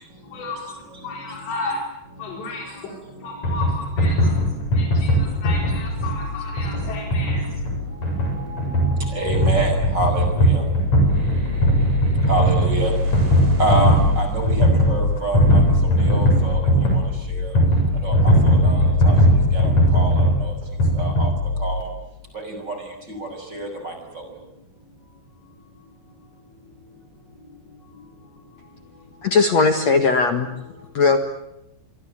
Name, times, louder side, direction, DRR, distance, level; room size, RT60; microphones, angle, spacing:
voice 1, 0.3-1.8 2.2-4.4 4.7-7.4, left 3 dB, 70° left, 1 dB, 6.6 m, -33 dB
sound 1, 3.4-21.8, equal, 40° left, 8.1 m, -19 dB
voice 2, 9.0-10.6 12.3-12.9 13.6-15.6 16.0-16.6 16.9-17.0 17.3-17.5 18.0-19.1 19.5-20.5 20.9-21.3 21.6-21.9 22.3-22.7 23.2-24.2, right 2 dB, 20° right, 5 dB, 6.5 m, -27 dB
sound 2, 11.1-17.6, right 2 dB, 75° right, 7.7 m, -37 dB
voice 3, 29.2-30.5 30.9-31.2, left 4 dB, 55° left, 7 dB, 2.1 m, -18 dB
28.5 x 23.0 x 8.9 m, 0.86 s
omnidirectional pair, 5.2 m